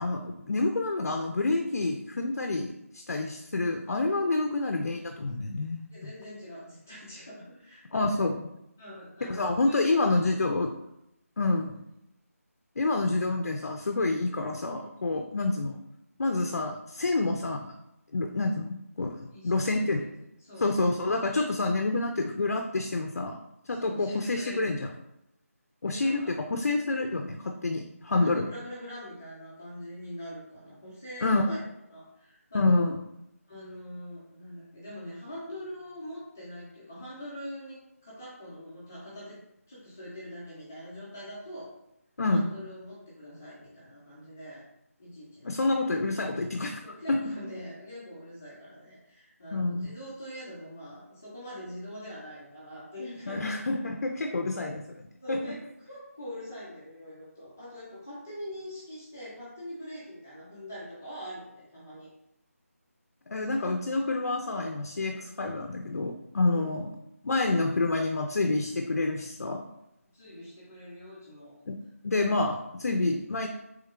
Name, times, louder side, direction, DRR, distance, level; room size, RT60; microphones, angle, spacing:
voice 1, 0.0-6.1 7.9-8.5 9.3-10.7 11.4-11.8 12.8-15.8 16.2-17.7 18.1-20.0 20.6-23.4 23.7-24.9 25.8-28.5 31.2-31.6 32.5-33.0 42.2-42.5 45.4-46.8 47.1-47.2 49.5-49.9 53.3-54.8 55.3-55.5 63.3-66.9 67.2-69.7 71.7-71.8 72.0-73.5, left 2 dB, 75° left, 4 dB, 0.4 m, -28 dB
voice 2, 5.9-8.0 8.8-10.2 11.4-11.6 16.3-16.5 19.3-20.1 20.4-20.7 23.7-24.9 25.8-26.4 28.1-32.9 33.5-39.4 39.7-41.7 42.3-44.6 45.0-45.5 46.8-53.6 54.0-54.1 55.2-62.1 63.4-63.6 65.0-65.3 66.5-66.7 70.1-71.5, equal, 10° left, -9 dB, 0.4 m, -43 dB
3.1 x 2.2 x 3.5 m, 0.84 s
figure-of-eight pair, 175°, 8 cm